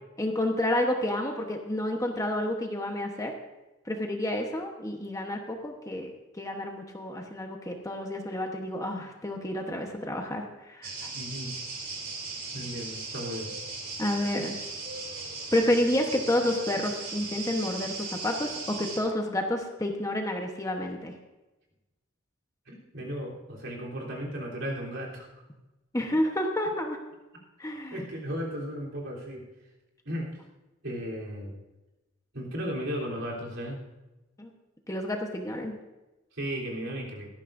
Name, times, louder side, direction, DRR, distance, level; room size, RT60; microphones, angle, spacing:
voice 1, 0.2-3.3 3.9-6.1 6.4-11.1 14.0-14.6 15.5-21.1 25.9-27.0 27.6-28.0 34.4-34.5 34.9-35.7, left 1 dB, 15° left, 2 dB, 1.0 m, -29 dB
sound 1, 10.8-19.0, right 3 dB, 45° right, 3.1 m, -37 dB
voice 2, 11.1-11.6 12.5-13.5 22.7-25.3 27.9-29.4 30.0-30.3 30.8-31.5 32.3-33.8 36.3-37.3, equal, 65° right, -3 dB, 3.5 m, -35 dB
17.5 x 14.0 x 2.6 m, 1.1 s
head